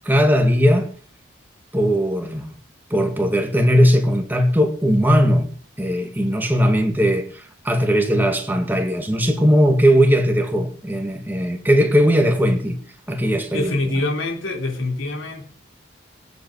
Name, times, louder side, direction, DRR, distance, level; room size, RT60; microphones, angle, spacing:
voice 1, 0.1-0.9 1.7-2.5 2.9-12.8 13.1-13.8, equal, 10° right, 2.1 m, -18 dB
voice 2, 13.5-15.5, left 2 dB, 90° left, 3.6 m, -25 dB
18.5 x 8.4 x 6.3 m
head